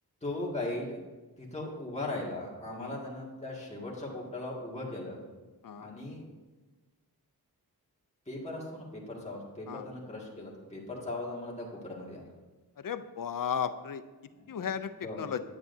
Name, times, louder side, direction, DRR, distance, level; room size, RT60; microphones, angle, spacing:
voice 1, 0.2-1.0 1.4-5.2 5.8-6.2 8.3-12.2 14.4-14.6 15.0-15.2, left 2 dB, 15° left, -5 dB, 2.0 m, -38 dB
voice 2, 12.8-14.0 14.5-15.4, left 8 dB, 55° left, 11 dB, 0.5 m, -35 dB
9.6 x 8.7 x 2.7 m, 1.3 s
wide cardioid pair, 100°, 39 cm